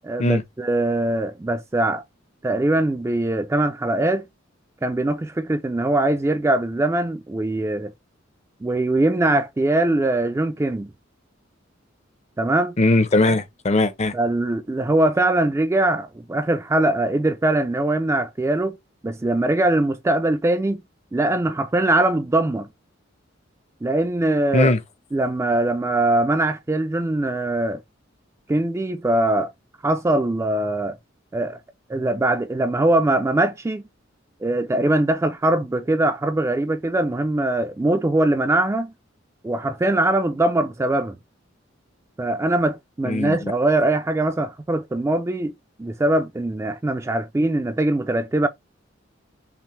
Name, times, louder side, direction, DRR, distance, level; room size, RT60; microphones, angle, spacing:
voice 1, 0.0-2.0 2.4-4.3 4.8-7.9 8.6-10.9 12.4-12.7 14.1-18.8 19.0-20.8 21.1-22.7 23.8-24.7 25.1-27.8 28.5-29.5 29.8-31.0 31.3-31.6 31.9-33.9 34.4-38.9 39.4-41.2 42.2-45.5 45.8-48.5, right 2 dB, 15° right, 0.3 m, -22 dB
voice 2, 12.8-14.1 24.5-24.8 43.0-43.5, left 2 dB, 35° left, 0.6 m, -19 dB
5.7 x 2.0 x 3.1 m
head